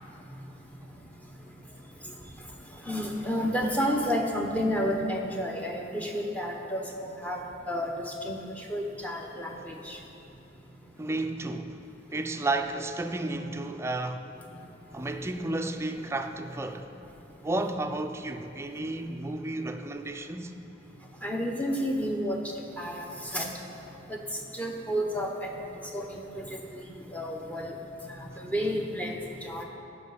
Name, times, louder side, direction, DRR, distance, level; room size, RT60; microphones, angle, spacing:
voice 1, 2.8-7.4 7.7-10.0 21.2-22.4 22.8-23.1 23.3-23.5 24.1-24.2 24.5-25.5 25.9-26.6 27.1-27.7 28.2-29.6, equal, 10° left, 0.8 m, -31 dB
voice 2, 11.0-11.8 12.1-14.3 14.9-16.9 17.4-20.5, right 2 dB, 15° right, 0.4 m, -32 dB
15.0 x 5.7 x 4.0 m
head